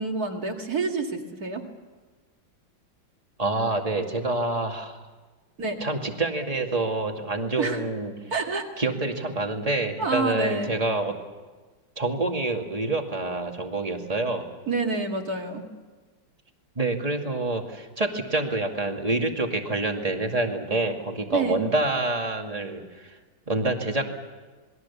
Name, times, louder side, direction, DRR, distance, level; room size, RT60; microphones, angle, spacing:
voice 1, 0.0-1.6 5.6-5.8 7.6-7.8 8.3-8.8 10.0-10.7 14.7-15.6 21.3-21.6, right 3 dB, 50° right, 2 dB, 2.6 m, -28 dB
voice 2, 3.4-5.0 5.8-8.1 8.8-11.1 12.0-14.5 16.8-23.2 23.5-24.0, right 2 dB, 20° right, 3 dB, 2.2 m, -27 dB
28.0 x 21.5 x 7.2 m, 1.3 s
omnidirectional pair, 2.1 m